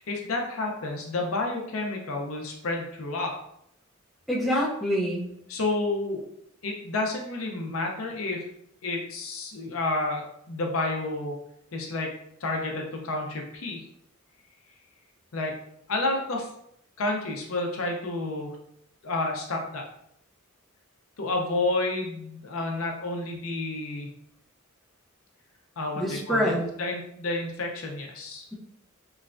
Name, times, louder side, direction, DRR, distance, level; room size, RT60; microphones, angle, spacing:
voice 1, 0.0-3.4 5.5-6.3 6.6-8.4 8.8-11.4 11.7-13.8 15.3-15.6 15.9-16.5 17.0-18.6 19.0-19.8 21.2-24.1 25.8-28.5, left 2 dB, 70° left, 1 dB, 0.6 m, -30 dB
voice 2, 4.3-5.3 26.0-26.7, equal, ahead, -6 dB, 0.5 m, -26 dB
3.1 x 2.2 x 2.5 m, 0.74 s
head